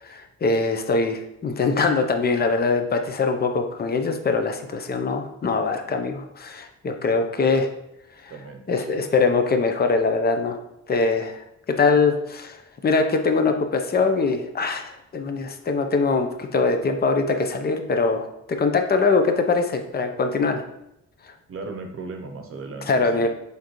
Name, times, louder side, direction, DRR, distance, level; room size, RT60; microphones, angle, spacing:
voice 1, 0.0-7.7 8.2-8.3 8.7-10.6 10.9-11.4 11.8-20.6 22.9-23.3, left 4 dB, 30° left, 6 dB, 0.8 m, -22 dB
voice 2, 8.3-9.0 21.5-23.3, right 3 dB, 45° right, 4 dB, 0.8 m, -37 dB
6.4 x 5.3 x 3.1 m, 0.81 s
cardioid pair, 90°, 30 cm